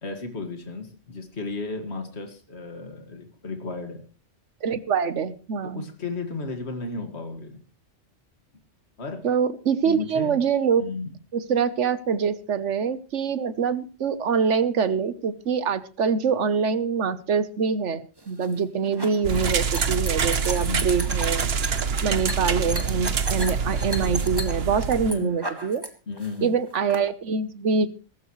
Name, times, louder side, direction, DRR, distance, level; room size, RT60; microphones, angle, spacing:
voice 1, 0.0-4.1 5.6-7.6 9.0-9.3 9.8-10.4 10.8-11.2 20.7-21.0 25.0-25.3 26.1-26.5, left 3 dB, 60° left, 5 dB, 2.4 m, -34 dB
voice 2, 4.6-5.9 9.2-10.8 11.3-21.5 22.0-25.8 26.4-27.9, right 6 dB, 75° right, 14 dB, 1.4 m, -25 dB
sound 1, 18.2-25.9 26.2-27.0, right 1 dB, 20° right, 2.0 m, -34 dB
sound 2, 19.2-25.1, right 6 dB, 60° right, 1.1 m, -26 dB
18.5 x 16.0 x 3.2 m, 0.35 s
omnidirectional pair, 1.2 m